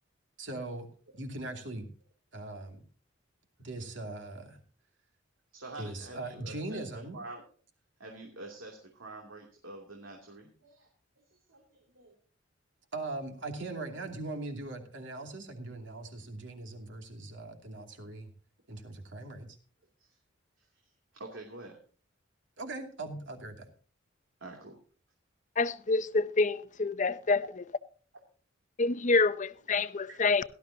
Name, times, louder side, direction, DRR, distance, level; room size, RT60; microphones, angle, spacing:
voice 1, 0.4-0.9 1.1-1.9 2.3-2.8 3.6-4.6 5.8-7.2 12.9-18.3 18.7-19.6 22.6-23.6, right 2 dB, 65° right, 2.6 m, -40 dB
voice 2, 5.5-6.9 7.1-7.4 8.0-10.9 11.1-11.2 11.5-12.1 20.0-20.2 20.6-20.7 21.1-21.8 24.4-24.8 29.2-29.3 30.1-30.2, right 2 dB, 85° right, 2.9 m, -47 dB
voice 3, 25.6-27.4 28.8-30.4, left 3 dB, 40° left, 0.6 m, -27 dB
18.0 x 13.0 x 2.8 m
head